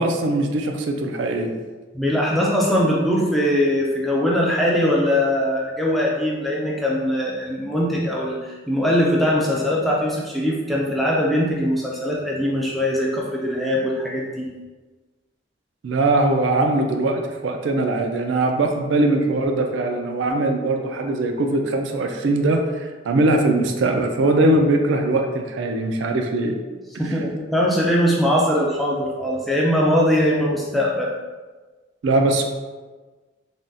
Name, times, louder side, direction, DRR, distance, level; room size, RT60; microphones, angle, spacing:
voice 1, 0.0-1.5 15.8-26.6 32.0-32.4, right 2 dB, 70° right, 4 dB, 0.3 m, -21 dB
voice 2, 1.9-14.5 27.0-31.1, equal, ahead, -4 dB, 0.4 m, -21 dB
3.4 x 2.3 x 2.6 m, 1.3 s
head